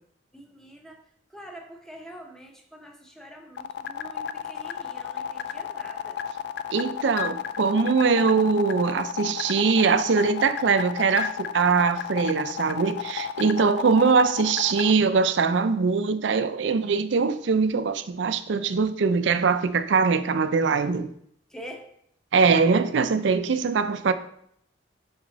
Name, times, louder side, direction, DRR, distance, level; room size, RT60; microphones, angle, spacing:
voice 1, 0.3-6.2 21.5-21.9, equal, 5° left, 0.8 m, -45 dB
sound 1, 3.6-14.9, left 9 dB, 60° left, 0.3 m, -32 dB
voice 2, 6.7-21.1 22.3-24.1, right 5 dB, 70° right, 0.4 m, -22 dB
6.1 x 4.9 x 3.9 m
head